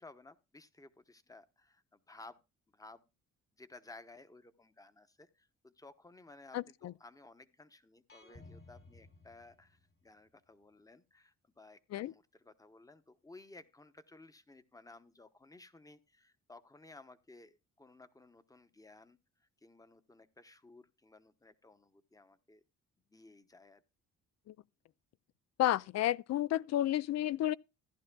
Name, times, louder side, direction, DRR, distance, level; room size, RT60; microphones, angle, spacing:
voice 1, 0.0-2.4 2.7-3.1 3.6-22.6 23.1-23.8, left 2 dB, 10° left, 0.9 m, -57 dB
voice 2, 6.5-6.9 11.9-12.1 24.5-24.6 25.6-27.5, left 13 dB, 60° left, 0.4 m, -31 dB
sound 1, 8.1-10.1, left 2 dB, 45° left, 3.0 m, -57 dB
15.0 x 11.0 x 2.3 m
cardioid pair, 90°, 30 cm